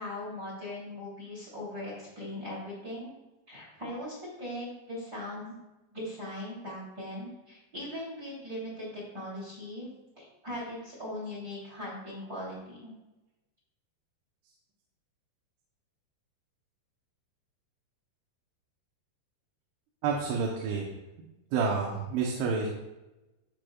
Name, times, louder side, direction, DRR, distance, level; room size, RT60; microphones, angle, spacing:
voice 1, 0.0-3.1 3.5-5.5 5.9-9.9 10.2-12.9, left 1 dB, 25° right, -5 dB, 2.8 m, -39 dB
voice 2, 20.0-20.9 21.5-22.7, right 5 dB, 85° right, -1 dB, 3.2 m, -29 dB
15.0 x 5.0 x 2.3 m, 0.99 s
omnidirectional pair, 5.2 m